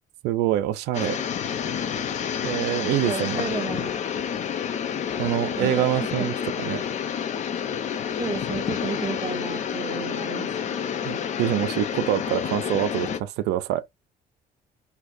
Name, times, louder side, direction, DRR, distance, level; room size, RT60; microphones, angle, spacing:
voice 1, 0.2-1.2 2.4-3.4 5.2-6.8 11.0-13.8, right 13 dB, 90° right, 0.5 m, -25 dB
sound 1, 0.9-13.2, left 8 dB, 45° left, 0.6 m, -29 dB
voice 2, 3.1-3.9 5.5-5.9 6.2-6.3 8.2-10.8, right 5 dB, 25° right, 0.6 m, -32 dB
2.8 x 2.4 x 4.2 m
cardioid pair, 110°, 17 cm